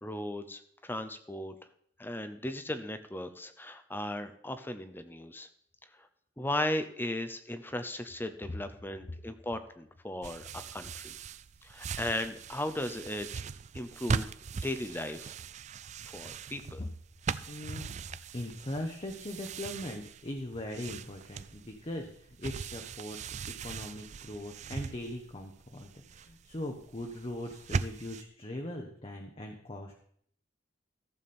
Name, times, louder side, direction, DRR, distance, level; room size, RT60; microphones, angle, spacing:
voice 1, 0.0-1.5 2.0-5.5 6.4-11.1 11.6-13.5 13.7-15.3 16.1-16.8, left 1 dB, 10° left, 9 dB, 0.7 m, -37 dB
sound 1, 10.2-28.2, right 5 dB, 40° right, 0.3 m, -40 dB
voice 2, 17.5-17.9 18.3-30.0, left 1 dB, 30° left, 2 dB, 1.0 m, -40 dB
14.5 x 7.1 x 4.3 m, 0.63 s
head